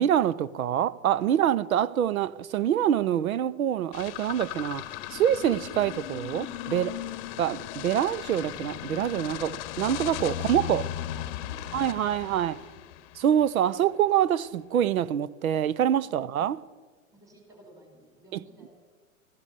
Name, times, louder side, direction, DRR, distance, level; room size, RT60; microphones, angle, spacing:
voice 1, 0.0-4.8 5.1-6.9 7.4-10.8 11.7-12.5 13.2-16.6 18.3-18.4, right 10 dB, 85° right, 0.6 m, -25 dB
voice 2, 1.1-1.7 6.7-7.6 11.1-13.1 16.0-16.3 17.1-18.7, right 1 dB, 10° right, 4.0 m, -54 dB
sound 1, 3.9-13.5, left 13 dB, 45° left, 0.8 m, -37 dB
14.5 x 11.5 x 6.6 m
hypercardioid pair, 120°, 41 cm